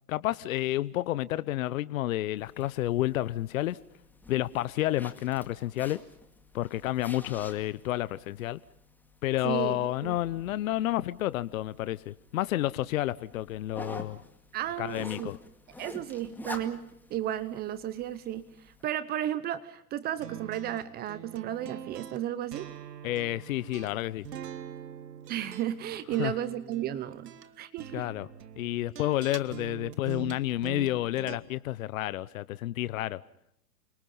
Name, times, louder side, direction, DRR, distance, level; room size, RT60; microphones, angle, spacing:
voice 1, 0.1-3.8 4.3-6.0 6.5-8.6 9.2-14.2 14.8-15.4 23.0-24.3 26.2-26.3 27.9-28.3 28.6-33.2, left 15 dB, 55° left, 0.9 m, -30 dB
Zipper (clothing), 2.4-18.8, left 2 dB, 5° left, 2.1 m, -49 dB
voice 2, 9.4-10.2 14.5-15.3 15.8-16.8 17.1-22.7 25.3-27.3 27.6-28.0, right 12 dB, 20° right, 0.8 m, -33 dB
sound 1, 10.0-11.8, right 4 dB, 35° right, 4.3 m, -56 dB
sound 2, 20.2-31.4, right 9 dB, 75° right, 2.4 m, -44 dB
29.5 x 25.0 x 5.6 m
hypercardioid pair, 135°, 48 cm